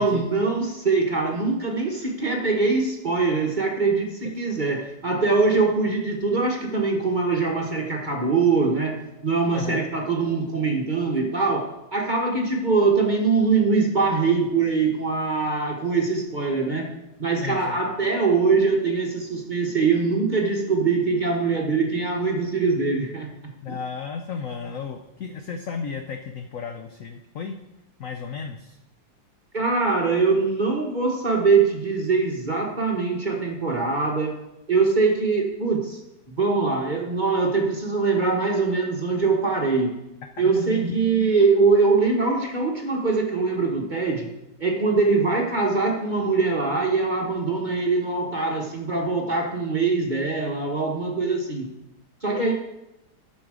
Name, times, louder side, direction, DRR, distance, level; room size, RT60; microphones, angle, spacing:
voice 1, 0.0-8.9 9.2-16.9 17.2-23.3 23.7-23.8 29.5-34.3 34.7-36.0 36.3-40.0 40.4-44.3 44.6-51.7 52.2-52.5, right 4 dB, 30° right, 0 dB, 1.1 m, -22 dB
voice 2, 9.5-9.9 17.4-17.8 23.6-27.6 28.0-28.8 52.3-52.5, left 6 dB, 70° left, 5 dB, 0.8 m, -33 dB
11.5 x 6.5 x 4.9 m, 0.92 s
omnidirectional pair, 2.1 m